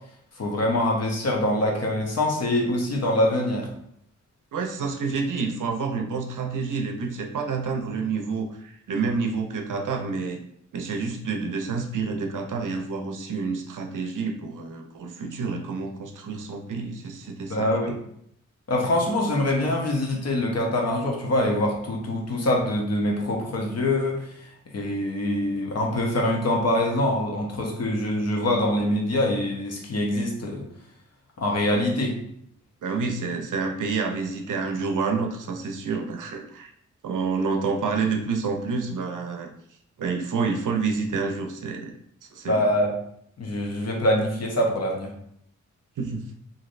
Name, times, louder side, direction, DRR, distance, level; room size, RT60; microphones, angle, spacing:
voice 1, 0.4-3.7 17.5-17.9 18.7-24.3 24.7-30.6 31.4-32.2 42.5-42.9 43.4-45.1, left 1 dB, 55° left, 0 dB, 0.7 m, -24 dB
voice 2, 4.5-10.4 10.7-18.0 32.8-36.7 37.0-39.5 40.0-41.9 42.3-42.7 46.0-46.3, right 4 dB, 80° right, 4 dB, 0.5 m, -28 dB
3.1 x 2.6 x 2.5 m, 0.70 s
wide cardioid pair, 85°, 30 cm